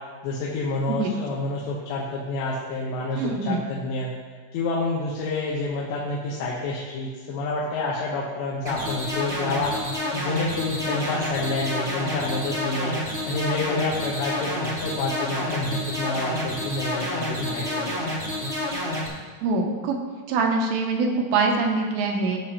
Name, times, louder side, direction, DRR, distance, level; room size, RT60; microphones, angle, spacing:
voice 1, 0.2-4.1 4.5-9.7 10.1-12.9 13.3-17.9, left 2 dB, 75° left, -4 dB, 3.0 m, -28 dB
voice 2, 3.2-3.6 19.4-20.0 20.3-22.4, right 4 dB, 80° right, 2 dB, 2.9 m, -24 dB
sound 1, 8.6-19.1, left 1 dB, 60° right, 0.6 m, -29 dB
14.5 x 6.7 x 2.8 m, 1.5 s
omnidirectional pair, 5.4 m